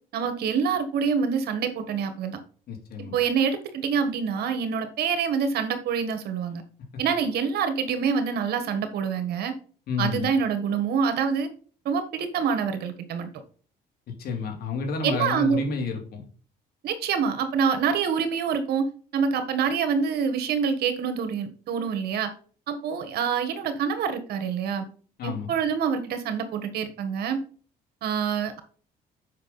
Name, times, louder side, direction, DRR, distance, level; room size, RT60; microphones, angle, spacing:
voice 1, 0.1-2.4 3.0-6.6 7.0-9.5 10.0-11.5 11.8-13.3 15.0-15.6 16.8-18.9 19.1-22.3 22.7-24.8 25.2-27.4 28.0-28.6, right 6 dB, 70° right, 8 dB, 1.5 m, -26 dB
voice 2, 2.7-3.1 9.9-10.3 14.2-16.2 25.2-25.5, left 4 dB, 65° left, 2 dB, 2.7 m, -30 dB
7.4 x 5.6 x 4.2 m, 0.42 s
cardioid pair, 110°, 17 cm